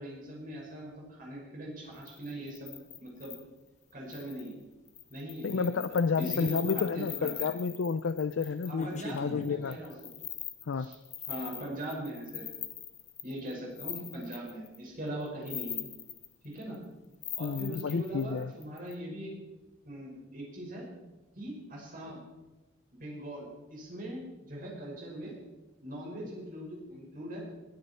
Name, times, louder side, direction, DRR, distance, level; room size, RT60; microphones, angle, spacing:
voice 1, 0.0-2.7 3.0-3.3 3.9-4.6 5.1-7.5 8.6-10.0 10.8-11.0 11.3-12.4 13.2-15.8 16.4-16.8 17.4-19.3 19.8-20.8 21.3-22.2 23.0-25.3 25.8-27.4, right 1 dB, 45° right, -3 dB, 5.6 m, -41 dB
sound 1, 2.0-3.4 4.1-4.5 4.9-14.8 15.3-16.8 17.2-18.9, left 9 dB, 40° left, 1.3 m, -41 dB
voice 2, 5.4-9.8 10.6-10.9 17.4-18.5, left 5 dB, 75° left, 12 dB, 0.4 m, -30 dB
20.5 x 9.7 x 4.5 m, 1.1 s
head